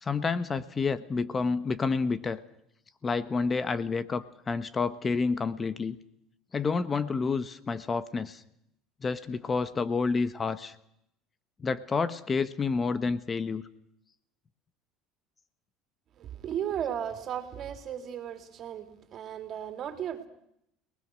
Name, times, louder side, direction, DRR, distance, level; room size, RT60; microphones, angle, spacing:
voice 1, 0.0-2.4 3.0-6.0 6.5-8.4 9.0-10.7 11.6-13.6, left 4 dB, 25° left, 14 dB, 1.1 m, -29 dB
voice 2, 16.2-20.3, right 9 dB, 45° right, 7 dB, 3.4 m, -35 dB
29.5 x 20.0 x 6.4 m, 0.76 s
supercardioid pair, 110°, 0 cm